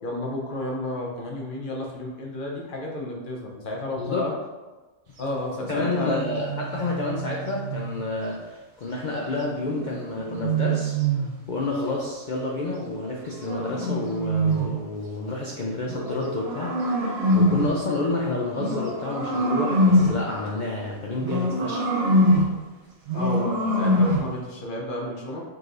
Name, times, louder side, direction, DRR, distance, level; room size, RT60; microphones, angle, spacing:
voice 1, 0.0-4.3 5.2-6.2 23.1-25.4, left 1 dB, 45° left, -2 dB, 0.8 m, -31 dB
voice 2, 4.0-4.3 5.7-21.9, left 2 dB, 80° left, -3 dB, 0.4 m, -29 dB
sound 1, 5.6-8.0 9.6-11.4 12.8-14.8 15.8-17.8 18.5-20.3 21.2-22.6 23.1-24.3, equal, 60° right, 1.1 m, -24 dB
4.8 x 3.2 x 2.5 m, 1.2 s
omnidirectional pair, 1.4 m